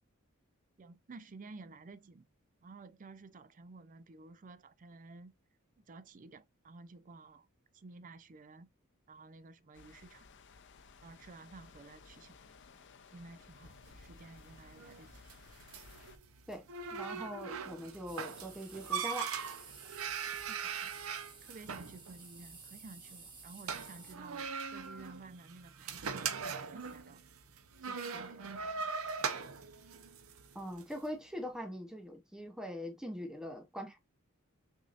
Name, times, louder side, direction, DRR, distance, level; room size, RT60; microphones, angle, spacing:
voice 1, 0.8-2.3 2.6-5.3 5.9-7.5 7.7-8.7 9.1-10.3 11.0-12.4 13.1-15.1 20.5-20.9 21.4-24.5 24.7-27.2 27.8-28.6, right 3 dB, 40° right, 0.4 m, -53 dB
sound 1, 9.7-16.2, left 4 dB, 60° left, 0.6 m, -57 dB
sound 2, 13.7-31.0, right 6 dB, 80° right, 0.7 m, -41 dB
voice 2, 16.9-19.3 30.5-34.0, equal, 5° right, 0.7 m, -42 dB
sound 3, 18.1-24.1, right 4 dB, 25° right, 1.1 m, -54 dB
6.1 x 2.7 x 2.5 m
head